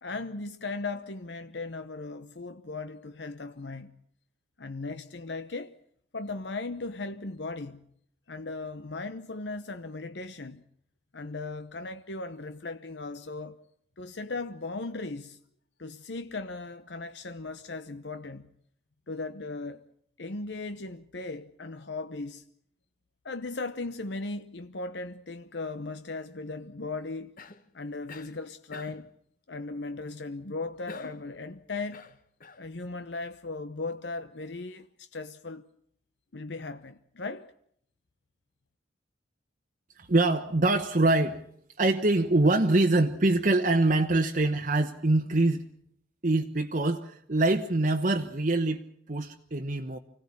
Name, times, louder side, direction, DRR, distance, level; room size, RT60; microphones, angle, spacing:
voice 1, 0.0-3.9 4.6-5.7 6.1-7.9 8.3-10.6 11.1-13.6 14.0-15.4 15.8-18.5 19.1-19.8 20.2-22.4 23.2-27.3 27.7-29.1 29.5-32.0 32.6-35.7 36.3-37.5, left 3 dB, 70° left, 0.9 m, -37 dB
Cough, 27.4-27.7 28.1-28.4 28.7-29.1 30.9-31.3 31.9-32.7, left 3 dB, 50° left, 1.2 m, -46 dB
voice 2, 39.9-41.4 41.8-45.7 46.2-50.0, right 2 dB, 45° right, 1.0 m, -24 dB
25.5 x 17.0 x 8.5 m
head